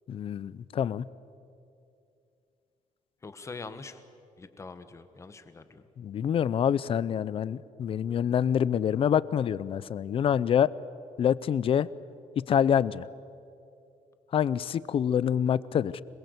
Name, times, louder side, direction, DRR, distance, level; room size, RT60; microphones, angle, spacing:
voice 1, 0.1-1.0 6.0-10.7 11.2-11.9 12.4-13.1 14.3-16.0, left 8 dB, 45° left, 19 dB, 0.6 m, -26 dB
voice 2, 3.2-4.0 4.4-5.8, left 4 dB, 20° left, 10 dB, 1.3 m, -43 dB
27.0 x 21.5 x 8.1 m, 2.6 s
cardioid pair, 170°, 13 cm